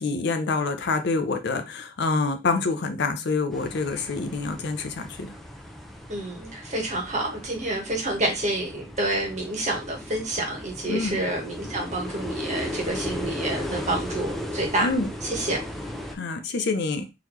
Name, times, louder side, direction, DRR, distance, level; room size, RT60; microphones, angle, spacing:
voice 1, 0.0-5.3 10.9-11.2 14.8-15.1 16.1-17.1, left 3 dB, 60° left, 8 dB, 0.6 m, -26 dB
sound 1, 3.5-16.2, left 1 dB, ahead, 0.5 m, -36 dB
voice 2, 6.1-14.9 15.2-15.6, right 1 dB, 40° right, 1 dB, 1.3 m, -28 dB
3.8 x 3.0 x 3.1 m, 0.25 s
head